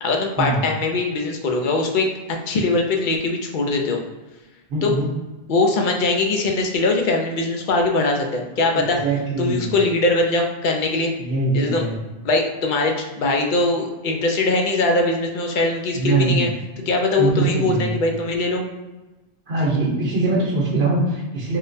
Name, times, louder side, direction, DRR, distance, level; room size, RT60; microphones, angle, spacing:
voice 1, 0.0-2.1 2.5-4.0 4.8-4.9 5.5-9.0 9.4-11.1 11.5-11.8 12.2-16.5 16.9-18.6, left 3 dB, 60° left, 2 dB, 0.6 m, -21 dB
voice 2, 4.7-5.1 8.7-9.7 11.2-12.0 15.9-16.5 17.2-18.0 19.5-21.6, right 3 dB, 85° right, -7 dB, 1.2 m, -22 dB
3.7 x 2.2 x 2.6 m, 1.1 s
omnidirectional pair, 1.0 m